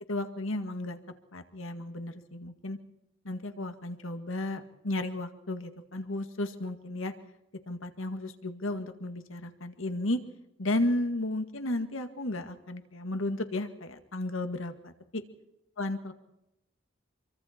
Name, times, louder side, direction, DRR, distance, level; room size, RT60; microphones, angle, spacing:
voice 1, 0.1-1.0 1.3-2.8 3.2-7.1 7.7-10.2 10.6-15.2 15.8-16.1, left 1 dB, 85° left, 8 dB, 2.0 m, -33 dB
27.0 x 23.5 x 4.4 m, 0.88 s
head